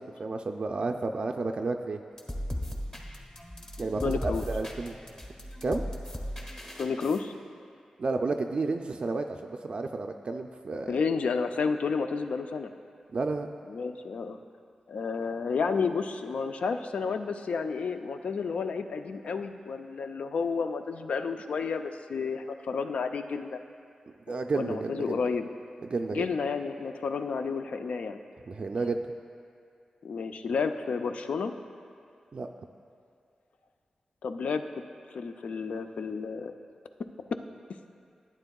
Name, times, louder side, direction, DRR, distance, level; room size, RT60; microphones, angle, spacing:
voice 1, 0.0-2.0 3.8-5.0 5.6-5.8 8.0-11.0 13.1-13.5 24.3-25.2 25.8-26.3 28.5-29.0 32.3-32.5, right 3 dB, 55° right, 4 dB, 0.3 m, -31 dB
sound 1, 2.1-7.2, equal, 25° left, 1.3 m, -37 dB
voice 2, 4.0-4.4 6.8-7.3 10.9-12.7 13.7-14.4 14.9-23.6 24.5-25.5 26.1-28.2 30.0-31.5 34.2-34.6 35.1-36.5 37.3-37.4, left 5 dB, 80° left, 7 dB, 0.4 m, -31 dB
11.5 x 8.9 x 2.3 m, 2.4 s
cardioid pair, 55°, 2 cm